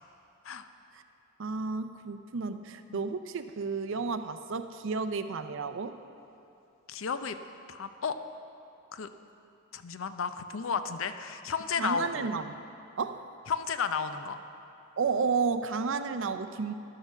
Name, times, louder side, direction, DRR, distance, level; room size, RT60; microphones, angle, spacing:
voice 1, 1.4-6.0 11.8-12.6 13.0-13.3 15.0-16.7, right 5 dB, 65° right, 10 dB, 0.5 m, -32 dB
voice 2, 6.9-7.4 7.7-8.2 8.9-9.1 9.7-12.3 13.5-14.4, left 5 dB, 65° left, 10 dB, 0.5 m, -33 dB
12.0 x 6.6 x 7.1 m, 2.7 s
head